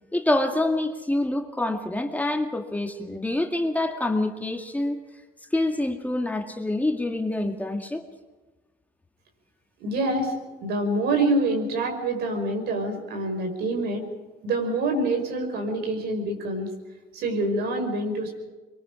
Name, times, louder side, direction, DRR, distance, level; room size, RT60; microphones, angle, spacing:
voice 1, 0.1-5.0 5.5-8.0, left 1 dB, 10° left, 3 dB, 2.0 m, -26 dB
voice 2, 9.8-14.0 14.4-16.7 17.1-18.4, right 2 dB, 75° right, 4 dB, 5.7 m, -26 dB
25.5 x 23.0 x 5.0 m, 1.2 s
cardioid pair, 110°, 17 cm